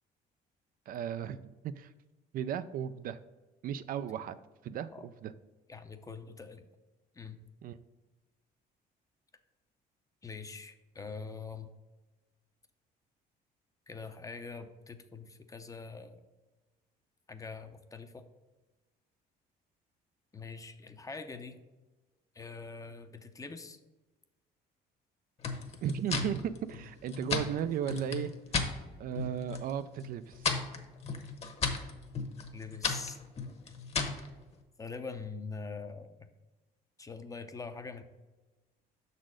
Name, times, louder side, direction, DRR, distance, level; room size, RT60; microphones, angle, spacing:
voice 1, 0.9-1.9 2.3-3.2 3.6-4.4 4.6-5.3 7.6-7.8 25.8-28.3 29.0-30.5, right 9 dB, 55° right, 12 dB, 0.4 m, -35 dB
voice 2, 5.7-6.6 7.2-7.4 10.2-11.7 13.9-16.2 17.3-18.3 20.3-21.6 22.3-23.8 32.5-33.2 34.8-36.3 37.0-38.0, left 4 dB, 20° left, 9 dB, 0.6 m, -44 dB
sound 1, 25.4-28.7 29.1-29.7 30.0-34.3, left 5 dB, 40° left, 1.1 m, -35 dB
6.3 x 4.1 x 6.2 m, 1.2 s
cardioid pair, 110°, 17 cm